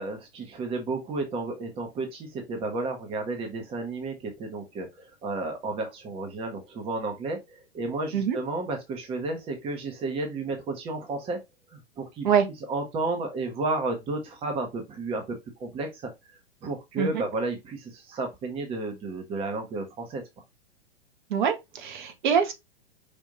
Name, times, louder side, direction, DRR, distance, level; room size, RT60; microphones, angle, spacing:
voice 1, 0.0-11.4 11.7-12.3 12.7-16.1 16.6-20.2, right 3 dB, 15° right, 0.9 m, -32 dB
voice 2, 21.3-22.5, right 7 dB, 50° right, 1.1 m, -24 dB
5.1 x 2.7 x 3.8 m
figure-of-eight pair, 105°, 32 cm